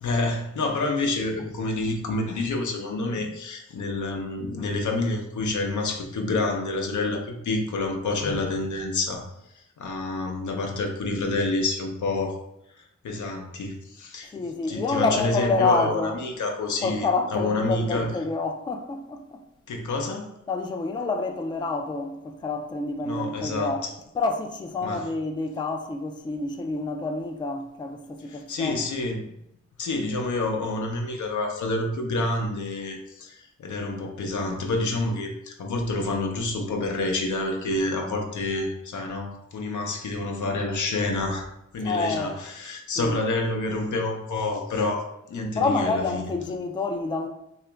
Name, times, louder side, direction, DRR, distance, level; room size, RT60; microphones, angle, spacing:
voice 1, 0.0-9.3 9.5-12.4 13.0-17.1 17.3-18.1 19.7-20.3 23.0-23.8 24.8-25.1 28.3-29.3 29.8-41.5 41.7-46.3, left 2 dB, 80° left, 0.6 m, -28 dB
voice 2, 14.3-16.2 16.8-19.4 20.5-23.8 24.1-28.8 41.8-42.3 43.0-43.2 45.6-47.3, left 3 dB, 15° left, 0.3 m, -28 dB
2.9 x 2.4 x 3.3 m
wide cardioid pair, 90°, 29 cm